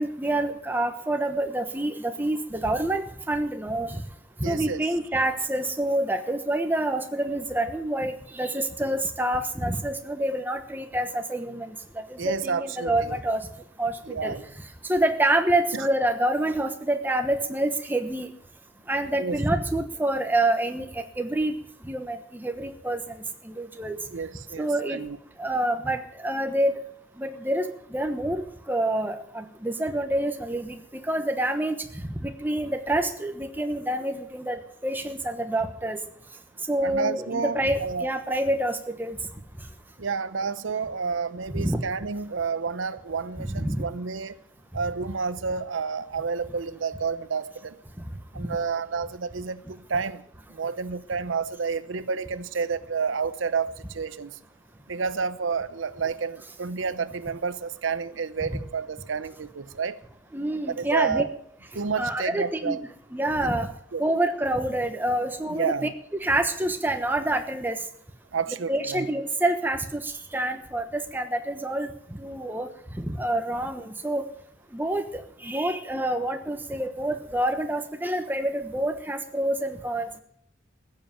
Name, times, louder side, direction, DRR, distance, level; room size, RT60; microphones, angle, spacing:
voice 1, 0.0-4.0 4.4-11.7 12.1-13.4 13.8-14.4 14.9-18.3 18.9-21.5 21.8-23.0 23.4-24.0 24.6-25.0 25.4-26.8 27.2-28.4 28.7-31.8 32.2-36.0 36.7-39.2 41.5-41.8 43.4-43.8 48.4-48.5 60.3-61.2 62.0-62.8 63.1-63.7 64.0-65.9 66.2-67.8 68.7-71.9 72.2-72.7 73.0-74.2 74.7-80.2, right 1 dB, 10° right, 6 dB, 1.1 m, -27 dB
voice 2, 4.4-4.9 12.2-13.2 14.1-14.5 15.7-15.9 19.2-19.4 24.1-25.2 36.8-38.1 40.0-44.4 44.7-47.8 48.3-50.2 50.5-54.3 54.9-60.0 60.7-61.3 61.7-62.8 63.9-64.1 65.5-65.9 68.3-69.1, right 5 dB, 85° right, 14 dB, 0.7 m, -30 dB
15.0 x 7.5 x 9.0 m, 0.68 s
head